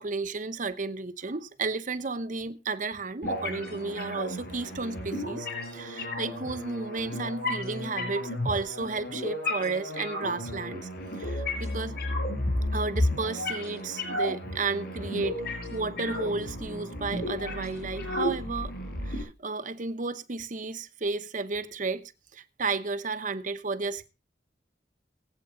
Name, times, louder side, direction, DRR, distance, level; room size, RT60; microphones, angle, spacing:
voice 1, 0.0-5.5 5.7-10.9 11.2-11.9 12.7-18.7 19.0-24.1, right 3 dB, 45° right, 0.9 m, -33 dB
sound 1, 3.2-19.2, left 1 dB, 60° left, 6.9 m, -33 dB
20.5 x 8.2 x 3.8 m
head